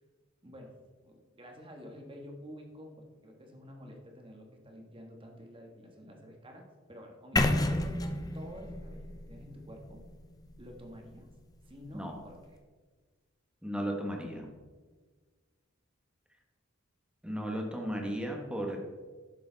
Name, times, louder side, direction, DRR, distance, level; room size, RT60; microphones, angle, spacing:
voice 1, 0.4-8.0 8.3-10.0 10.6-11.3 11.6-12.6, equal, 25° right, 2 dB, 1.5 m, -49 dB
voice 2, 7.3-7.8 11.9-12.2 13.6-14.5 17.2-18.8, equal, 5° right, 1 dB, 1.2 m, -35 dB
sound 1, 7.4-11.3, left 2 dB, 20° left, 0.6 m, -32 dB
11.0 x 6.8 x 4.0 m, 1.4 s
head